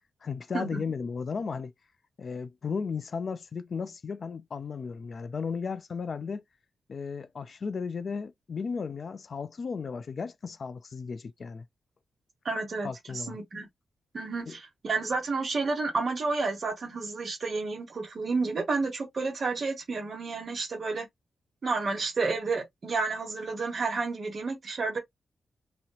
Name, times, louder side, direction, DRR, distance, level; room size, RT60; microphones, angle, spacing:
voice 1, 0.2-1.7 2.2-6.4 6.9-11.7 12.8-13.4 14.5-14.6, left 5 dB, 45° left, 0.4 m, -35 dB
voice 2, 12.4-13.7 14.1-21.0 21.6-25.0, right 3 dB, 45° right, 1.4 m, -31 dB
2.9 x 2.9 x 2.8 m
wide cardioid pair, 155°, 0 cm